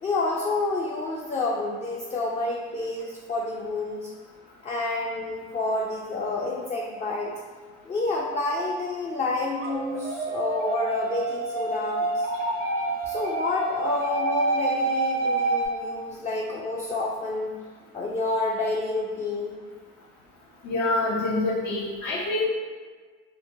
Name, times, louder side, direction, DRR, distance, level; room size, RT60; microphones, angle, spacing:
voice 1, 0.0-4.1 4.6-7.3 7.9-12.3 13.0-17.6 17.9-19.6, left 2 dB, 25° left, -2 dB, 0.3 m, -29 dB
sound 1, 9.6-15.7, right 2 dB, 80° right, 0.7 m, -28 dB
voice 2, 20.6-22.5, left 2 dB, 70° left, -5 dB, 0.6 m, -26 dB
2.9 x 2.1 x 2.5 m, 1.5 s
supercardioid pair, 65°, 31 cm